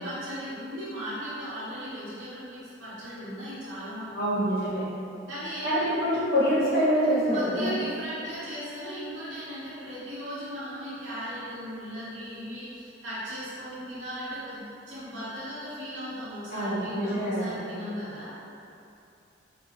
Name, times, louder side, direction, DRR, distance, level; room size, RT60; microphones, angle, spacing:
voice 1, 0.0-4.4 5.3-6.0 7.3-18.4, equal, 70° right, -12 dB, 0.8 m, -37 dB
voice 2, 4.1-4.8 5.6-7.7 16.5-17.6, equal, 55° left, -9 dB, 1.2 m, -25 dB
3.8 x 2.6 x 2.9 m, 2.7 s
head